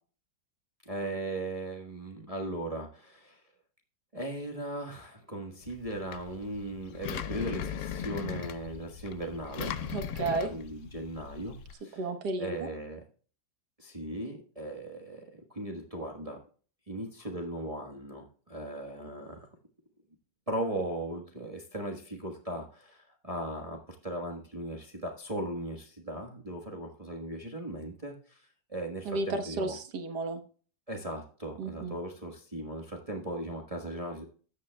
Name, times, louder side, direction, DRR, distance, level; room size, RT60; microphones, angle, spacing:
voice 1, 0.8-3.4 4.1-9.8 10.2-12.0 12.4-13.0 13.8-16.4 16.9-19.5 20.5-29.8 30.9-34.2, right 1 dB, 20° right, 1 dB, 1.2 m, -38 dB
Engine, 5.6-11.7, left 8 dB, 70° left, 0.7 m, -39 dB
voice 2, 9.9-10.5 11.9-12.7 29.0-30.4 31.6-32.0, right 3 dB, 60° right, 7 dB, 1.7 m, -33 dB
13.5 x 9.3 x 2.2 m, 0.42 s
omnidirectional pair, 2.1 m